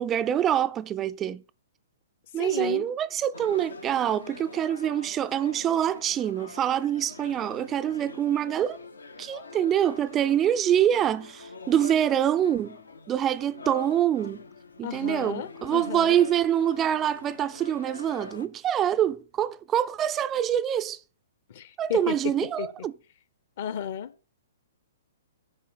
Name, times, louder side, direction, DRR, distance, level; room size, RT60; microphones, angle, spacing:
voice 1, 0.0-1.4 2.3-8.8 9.2-12.8 13.1-14.4 14.8-21.0 21.8-22.9, right 10 dB, 20° right, 0.5 m, -25 dB
voice 2, 2.4-2.9 14.8-16.2 21.5-22.3 22.6-22.7 23.6-24.1, left 10 dB, 45° left, 1.1 m, -33 dB
sound 1, 3.3-18.5, left 4 dB, 75° left, 1.1 m, -44 dB
9.3 x 5.9 x 8.2 m
figure-of-eight pair, 115°, 0 cm